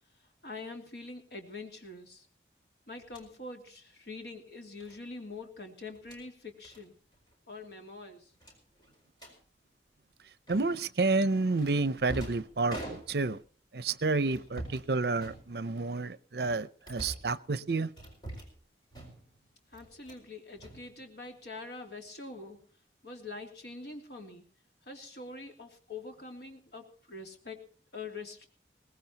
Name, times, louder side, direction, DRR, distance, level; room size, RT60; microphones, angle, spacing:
voice 1, 0.4-2.3 2.9-6.9 7.5-8.3 19.7-22.6 23.0-24.5 24.9-27.6 27.9-28.5, left 3 dB, 70° left, 2.9 m, -44 dB
sound 1, 3.0-3.3 4.8-5.0 5.9-6.2 6.6-6.8 7.1-7.3 7.6-7.7 8.4-9.4 10.5-10.9 11.6-13.4 14.3-14.9 15.2-15.9 16.4-17.3 18.0-18.6 18.9-19.4 19.7-20.3 20.6-21.4, right 1 dB, 25° left, 4.8 m, -45 dB
voice 2, 10.5-13.4 13.7-17.9, right 3 dB, 65° right, 0.6 m, -30 dB
22.0 x 18.5 x 2.9 m
head